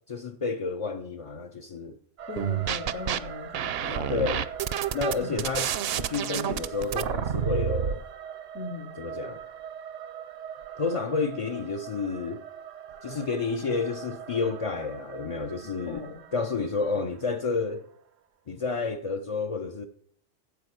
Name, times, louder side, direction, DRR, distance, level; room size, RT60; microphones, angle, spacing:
voice 1, 0.1-2.0 4.1-4.5 4.9-8.0 9.0-9.4 10.8-12.4 13.0-16.1 16.3-17.8 18.5-19.8, left 4 dB, 45° left, 0.4 m, -30 dB
sound 1, 2.2-18.2, right 8 dB, 85° right, 1.1 m, -43 dB
voice 2, 2.3-4.2 5.2-5.4 8.5-8.9 15.9-16.2, left 4 dB, 75° left, 1.8 m, -38 dB
sound 2, 2.4-3.2 3.5-8.0, right 10 dB, 65° right, 0.7 m, -29 dB
9.4 x 7.8 x 6.5 m
omnidirectional pair, 1.3 m